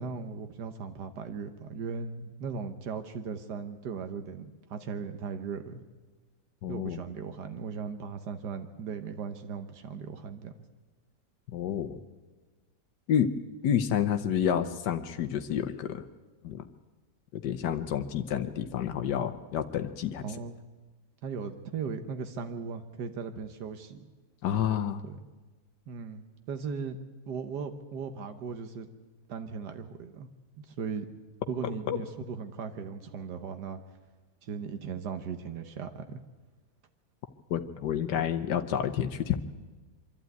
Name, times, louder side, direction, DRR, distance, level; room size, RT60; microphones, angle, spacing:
voice 1, 0.0-5.8 6.7-10.5 20.2-20.6 21.2-24.1 25.0-25.2 25.9-27.0 27.3-28.9 29.3-30.3 30.6-31.1 31.5-33.8 34.4-36.2, right 6 dB, 80° right, 8 dB, 1.6 m, -38 dB
voice 2, 6.6-7.0 11.5-12.0 13.1-13.3 13.6-16.0 16.4-16.6 17.3-20.2 24.4-25.0 31.9-32.0 37.5-39.4, left 9 dB, 90° left, 8 dB, 1.5 m, -29 dB
25.0 x 12.0 x 9.3 m, 1.3 s
omnidirectional pair, 1.8 m